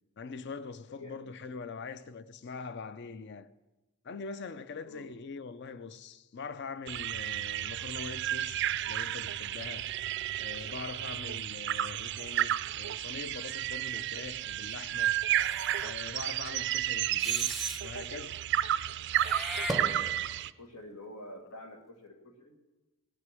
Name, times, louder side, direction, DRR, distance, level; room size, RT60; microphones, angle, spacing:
voice 1, 0.2-3.5 4.0-9.9 10.4-15.1 15.8-18.4, left 4 dB, 50° left, 0.5 m, -43 dB
voice 2, 0.9-1.3 4.9-5.1 20.6-22.6, left 1 dB, 85° left, 2.1 m, -48 dB
sound 1, 6.9-20.5, right 12 dB, 50° right, 0.3 m, -32 dB
Meow / Hiss, 15.3-15.9 17.2-17.8 19.1-20.4, right 1 dB, ahead, 0.6 m, -37 dB
17.5 x 6.6 x 7.5 m
head